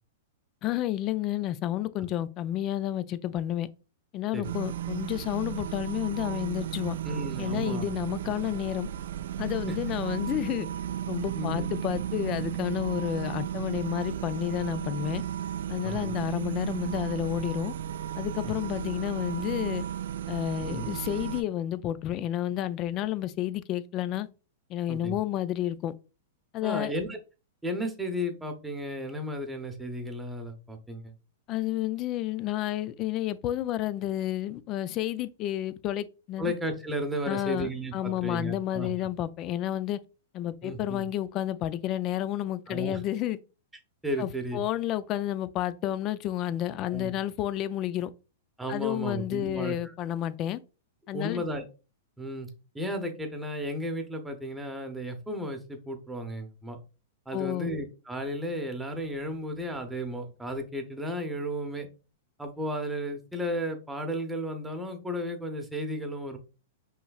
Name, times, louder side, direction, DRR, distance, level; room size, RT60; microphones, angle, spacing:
voice 1, 0.6-3.7 4.1-7.0 7.4-8.9 9.4-10.7 11.1-15.2 15.7-17.7 18.2-19.8 20.3-24.3 24.7-25.9 26.5-26.9 31.5-36.5 37.3-40.0 40.3-43.4 44.2-48.1 48.7-50.6 51.1-51.4 57.3-57.7, left 13 dB, 35° left, 0.4 m, -31 dB
sound 1, 4.4-21.4, right 10 dB, 75° right, 0.3 m, -34 dB
voice 2, 7.0-7.9 9.7-9.8 11.3-11.8 15.8-16.1 18.4-18.5 20.6-20.8 24.9-25.2 26.6-27.2 27.6-31.1 36.4-38.9 40.6-41.0 42.7-43.0 44.0-44.6 46.9-47.1 48.6-49.9 51.1-51.6 52.2-52.5 52.7-56.8 57.3-61.9 62.4-66.4, equal, 5° right, 0.9 m, -34 dB
5.4 x 3.2 x 2.3 m
hypercardioid pair, 130°, 0 cm